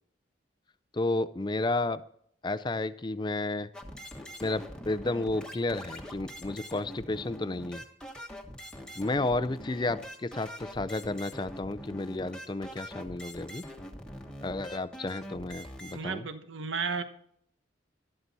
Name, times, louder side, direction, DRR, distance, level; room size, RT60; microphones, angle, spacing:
voice 1, 0.9-2.0 2.4-3.7 4.4-7.8 9.0-13.6 14.4-16.3, left 2 dB, 25° left, 0.4 m, -32 dB
sound 1, 3.7-16.0, equal, 5° left, 1.2 m, -44 dB
voice 2, 15.9-17.0, right 5 dB, 75° right, 1.1 m, -33 dB
12.5 x 12.5 x 4.1 m
head